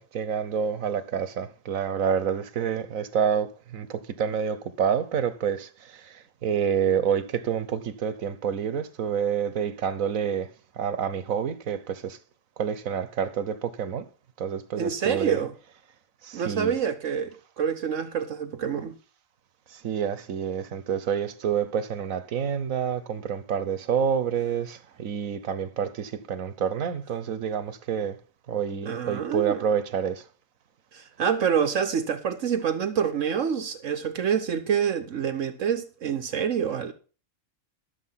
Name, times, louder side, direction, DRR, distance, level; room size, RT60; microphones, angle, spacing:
voice 1, 0.0-10.5 10.8-12.2 12.6-14.0 14.4-15.5 16.2-16.8 19.7-28.2 28.5-30.2, right 7 dB, 90° right, 1.4 m, -28 dB
voice 2, 14.8-15.5 16.3-18.9 28.8-29.6 30.9-36.9, right 7 dB, 70° right, 1.3 m, -27 dB
13.0 x 7.2 x 5.7 m
omnidirectional pair, 1.4 m